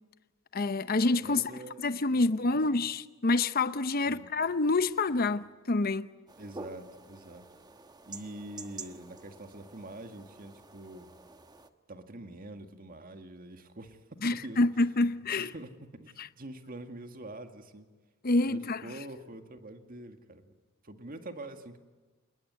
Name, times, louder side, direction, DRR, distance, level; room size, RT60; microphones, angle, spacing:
voice 1, 0.5-1.4 1.8-6.1 14.2-15.5 16.2-16.3 18.2-18.8, left 2 dB, 45° left, 0.8 m, -27 dB
voice 2, 1.2-1.8 2.1-2.8 4.1-4.3 6.4-7.5 8.1-11.1 11.9-14.6 15.3-17.9 18.4-20.5 20.8-21.8, right 1 dB, 45° right, 2.0 m, -45 dB
sound 1, 6.3-11.7, right 3 dB, 20° right, 1.3 m, -48 dB
27.5 x 21.0 x 9.6 m
head